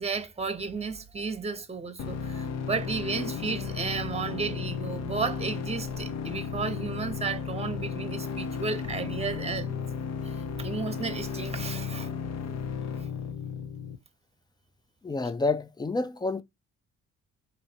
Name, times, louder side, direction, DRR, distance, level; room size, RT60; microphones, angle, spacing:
voice 1, 0.0-9.8 10.2-12.1 13.0-13.1, right 4 dB, 20° right, 0.9 m, -33 dB
sound 1, 2.0-14.0, left 6 dB, 55° left, 0.6 m, -34 dB
voice 2, 15.0-16.4, left 3 dB, 15° left, 0.4 m, -28 dB
3.0 x 2.8 x 2.8 m
supercardioid pair, 60°, 31 cm